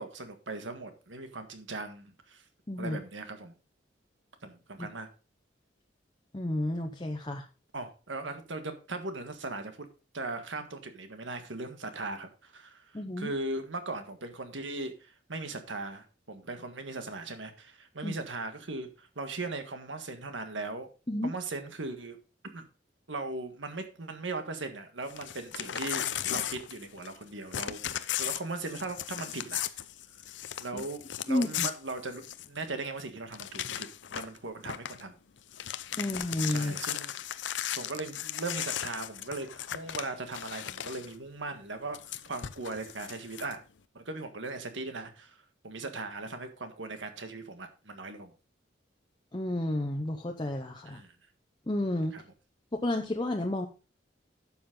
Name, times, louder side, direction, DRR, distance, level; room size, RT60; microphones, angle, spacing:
voice 1, 0.0-2.4 2.8-3.5 4.4-5.1 7.7-9.9 10.1-20.9 21.2-22.2 22.5-22.6 23.1-27.8 28.2-29.6 30.6-33.9 34.1-35.1 35.9-37.2 37.7-43.6 43.9-48.3 50.9-51.1 52.1-52.2, right 3 dB, 85° right, 7 dB, 1.7 m, -39 dB
voice 2, 6.3-7.4 12.9-13.3 18.0-18.2 21.1-21.3 30.7-30.8 31.3-31.7 36.0-36.7 49.3-51.0 51.7-52.1 52.8-53.7, left 1 dB, 25° left, 2 dB, 0.8 m, -31 dB
Crumpling crinkling / Tearing, 25.1-27.2 27.5-32.6 33.0-33.1 33.3-34.4 34.6-35.0 35.4-41.1 41.9-43.5, left 11 dB, 75° left, 0.6 m, -36 dB
11.5 x 7.3 x 3.8 m, 0.32 s
head